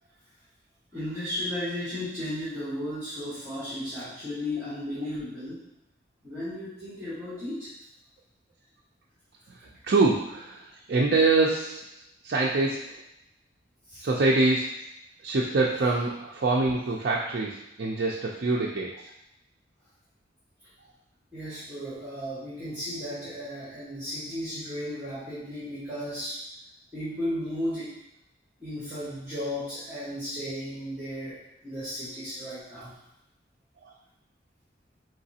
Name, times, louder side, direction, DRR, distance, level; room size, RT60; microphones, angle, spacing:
voice 1, 0.9-5.6 6.2-7.7 13.9-14.0 21.3-26.4 26.9-27.9 28.6-31.4 31.6-32.9, left 1 dB, 15° right, -13 dB, 1.6 m, -34 dB
voice 2, 9.5-11.8 12.2-13.0 14.0-14.8 15.2-19.1 33.8-33.9, right 3 dB, 55° right, -3 dB, 0.4 m, -25 dB
4.9 x 3.2 x 2.7 m, 0.85 s
head